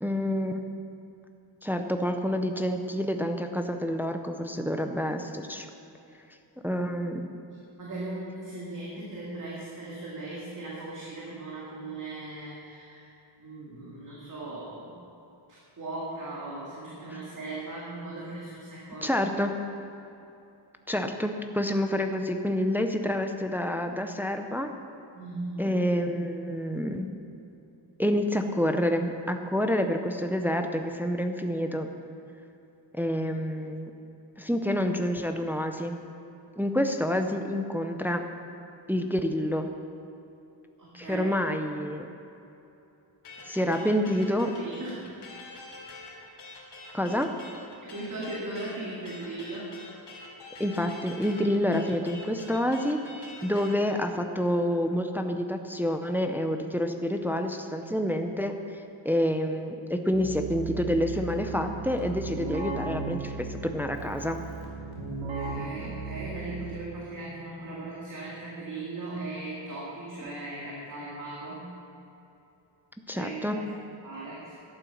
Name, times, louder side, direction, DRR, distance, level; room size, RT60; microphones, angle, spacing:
voice 1, 0.0-0.6 1.6-5.7 6.6-7.3 19.0-19.5 20.9-24.7 25.6-27.1 28.0-31.9 32.9-33.9 34.4-36.0 36.6-38.2 38.9-39.7 40.9-42.1 43.4-44.5 46.9-47.3 50.6-58.5 59.0-64.4 73.1-73.6, equal, 5° right, 5 dB, 0.5 m, -28 dB
voice 2, 7.8-13.1 13.4-14.9 15.8-19.2 25.1-25.8 40.8-41.4 43.5-44.1 44.5-45.1 47.8-49.8 65.1-71.7 73.1-73.7 74.0-74.5, right 2 dB, 40° right, -5 dB, 2.1 m, -38 dB
sound 1, 43.2-53.8, left 2 dB, 60° left, 3.0 m, -46 dB
Keyboard (musical), 60.1-67.0, right 4 dB, 85° right, 3.0 m, -36 dB
12.0 x 8.9 x 7.1 m, 2.9 s
wide cardioid pair, 170°, 46 cm